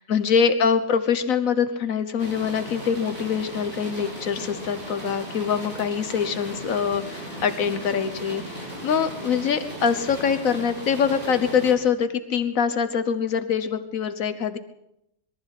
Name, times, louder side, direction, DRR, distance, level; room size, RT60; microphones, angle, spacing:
voice 1, 0.0-14.6, left 7 dB, 90° left, 10 dB, 1.6 m, -24 dB
sound 1, 2.2-11.7, right 1 dB, 40° right, 7.4 m, -37 dB
23.0 x 13.5 x 8.3 m, 0.82 s
omnidirectional pair, 1.4 m